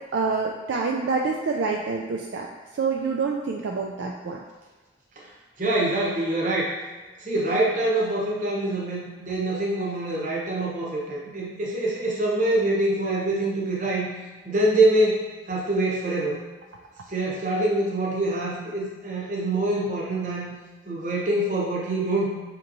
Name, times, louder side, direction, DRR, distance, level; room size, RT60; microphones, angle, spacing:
voice 1, 0.1-2.5 2.7-4.4, right 4 dB, 70° right, 0 dB, 0.3 m, -27 dB
voice 2, 5.6-6.7 7.2-14.1 14.4-16.4 17.1-20.5 20.9-22.3, right 2 dB, 45° right, -4 dB, 0.9 m, -25 dB
5.5 x 2.9 x 2.6 m, 1.3 s
head